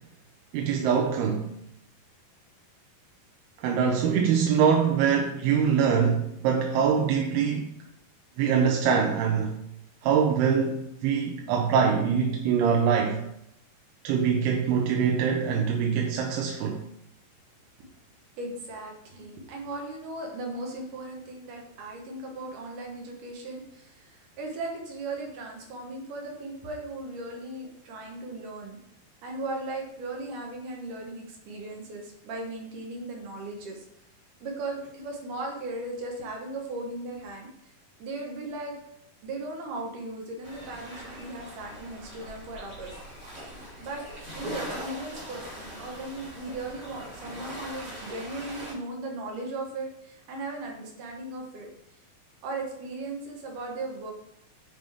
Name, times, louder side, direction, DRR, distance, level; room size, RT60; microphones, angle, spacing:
voice 1, 0.5-1.5 3.6-7.7 8.4-9.6 10.0-13.2 14.0-16.8, right 7 dB, 85° right, 2.7 m, -24 dB
voice 2, 18.4-28.8 29.2-33.9 34.4-37.5 38.0-38.7 39.2-43.0 43.8-51.7 52.4-54.1, right 2 dB, 65° right, 2.6 m, -37 dB
sound 1, 40.4-48.7, equal, 25° right, 2.5 m, -41 dB
8.6 x 5.2 x 3.6 m
omnidirectional pair, 4.4 m